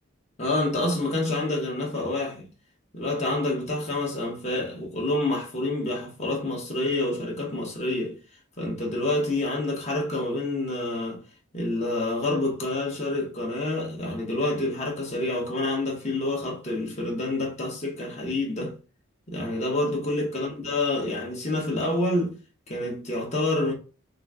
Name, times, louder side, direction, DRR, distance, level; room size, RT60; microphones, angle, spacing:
voice 1, 0.4-2.5 2.9-8.2 8.6-11.2 11.5-18.8 19.3-22.4 22.7-23.7, left 2 dB, 30° left, 1.0 m, -28 dB
3.8 x 2.2 x 3.5 m
head